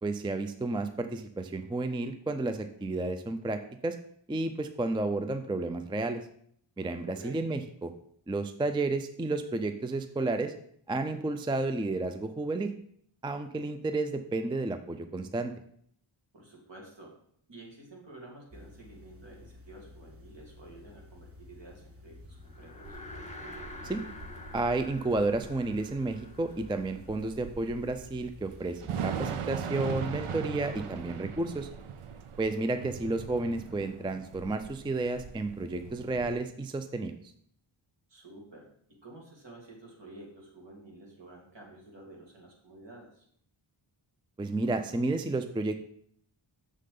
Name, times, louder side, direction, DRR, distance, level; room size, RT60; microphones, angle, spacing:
voice 1, 0.0-4.0 4.3-6.2 6.8-7.9 8.3-10.5 10.9-12.7 13.2-15.5 23.8-24.0 24.5-31.7 32.4-37.2 44.4-45.7, right 2 dB, 10° right, 9 dB, 0.3 m, -31 dB
voice 2, 7.0-7.4 16.3-17.2 17.5-23.0 30.6-31.3 38.1-43.3, right 2 dB, 60° right, -1 dB, 2.3 m, -50 dB
sound 1, 18.5-28.8, left 2 dB, 30° right, 1.0 m, -52 dB
sound 2, 22.4-27.8, left 1 dB, 15° left, 1.0 m, -47 dB
Thunder / Rain, 22.8-36.3, right 7 dB, 85° right, 0.6 m, -40 dB
6.6 x 6.4 x 3.8 m, 0.67 s
wide cardioid pair, 90°, 49 cm